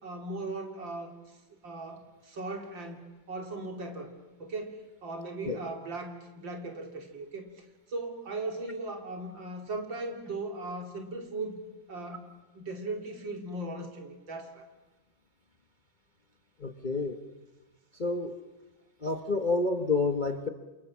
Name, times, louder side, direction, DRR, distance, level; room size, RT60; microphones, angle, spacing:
voice 1, 0.0-1.1 1.6-3.0 3.3-4.1 4.4-7.5 7.9-11.6 11.9-12.3 12.6-14.7, right 2 dB, 70° right, 4 dB, 3.6 m, -38 dB
voice 2, 16.6-17.2 18.0-18.4 19.0-20.5, left 3 dB, 30° left, 6 dB, 1.1 m, -29 dB
29.5 x 27.5 x 7.4 m, 1.1 s
omnidirectional pair, 2.1 m